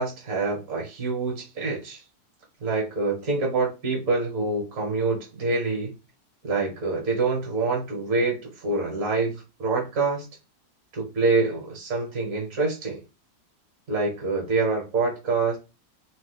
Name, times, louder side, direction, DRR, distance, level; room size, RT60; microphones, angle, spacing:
voice 1, 0.0-2.0 2.6-5.9 6.4-10.2 10.9-13.0 13.9-15.6, right 3 dB, 55° right, 1.2 m, -26 dB
3.0 x 2.1 x 3.3 m
omnidirectional pair, 1.9 m